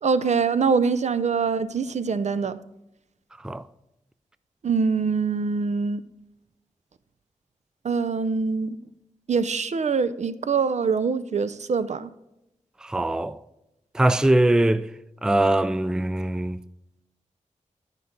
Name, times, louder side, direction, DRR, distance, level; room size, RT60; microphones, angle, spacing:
voice 1, 0.0-2.6 4.6-6.0 7.8-8.8 9.3-12.1, right 5 dB, 65° right, 0.5 m, -24 dB
voice 2, 12.8-13.4 13.9-14.9 15.2-16.6, right 1 dB, 5° right, 0.3 m, -21 dB
13.5 x 5.7 x 3.7 m
wide cardioid pair, 80°, 13 cm